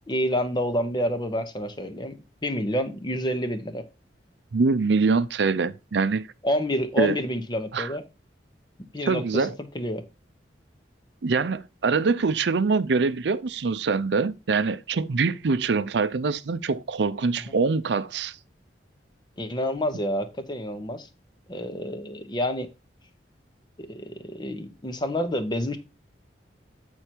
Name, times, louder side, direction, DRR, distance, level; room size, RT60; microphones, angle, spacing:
voice 1, 0.1-3.8 6.4-8.0 8.9-9.5 9.7-10.0 19.4-21.1 21.5-22.7 23.8-25.8, equal, 25° left, 0.9 m, -28 dB
voice 2, 4.5-6.3 7.0-7.2 7.7-7.9 9.0-9.5 11.2-18.4, right 4 dB, 70° right, 0.5 m, -24 dB
8.3 x 4.5 x 4.5 m
head